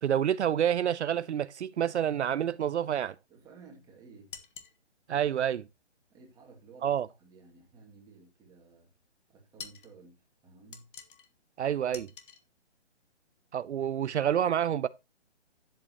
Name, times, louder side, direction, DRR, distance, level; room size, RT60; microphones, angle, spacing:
voice 1, 0.0-3.2 5.1-5.7 6.8-7.1 11.6-12.1 13.5-14.9, right 9 dB, 70° right, 0.6 m, -28 dB
voice 2, 3.3-4.4 6.1-8.9 9.3-10.9, right 4 dB, 10° right, 2.2 m, -55 dB
sound 1, 4.3-4.8 9.6-9.9 10.7-11.3 11.9-12.4, left 7 dB, 45° left, 1.7 m, -46 dB
12.0 x 7.8 x 2.9 m
hypercardioid pair, 160°, 35 cm